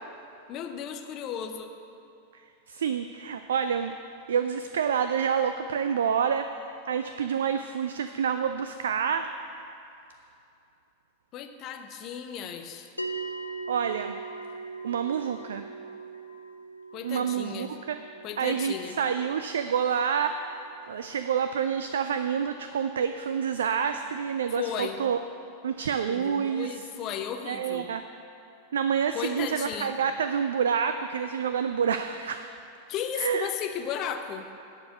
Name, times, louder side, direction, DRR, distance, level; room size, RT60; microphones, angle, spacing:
voice 1, 0.5-1.7 11.3-12.9 16.9-17.7 18.2-19.0 24.5-25.0 26.1-27.9 29.1-30.0 32.9-34.5, left 8 dB, 35° left, 6 dB, 0.7 m, -35 dB
voice 2, 2.3-3.9 4.3-9.3 13.7-14.2 14.8-15.7 17.0-18.0 18.4-25.2 25.6-26.8 27.5-28.0 28.7-32.5 33.2-33.5, right 7 dB, 65° right, 9 dB, 0.3 m, -28 dB
sound 1, 13.0-23.5, right 3 dB, 85° left, 0.5 m, -42 dB
10.0 x 4.9 x 7.8 m, 2.7 s
figure-of-eight pair, 90°, 0 cm